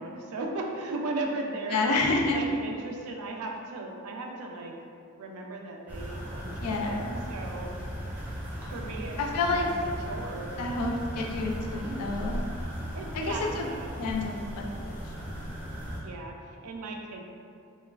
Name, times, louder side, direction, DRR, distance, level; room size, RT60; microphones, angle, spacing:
voice 1, 0.0-1.9 2.3-4.7 5.2-7.7 8.7-10.5 11.8-12.0 12.9-14.0 16.0-17.2, right 2 dB, 80° right, 1 dB, 0.4 m, -37 dB
voice 2, 1.7-2.4 6.6-7.3 9.2-9.6 10.6-12.4 13.1-13.6 14.0-15.6, left 3 dB, 80° left, 1 dB, 0.4 m, -29 dB
sound 1, 5.9-16.0, equal, 5° right, 0.4 m, -37 dB
3.0 x 2.2 x 2.3 m, 2.3 s
head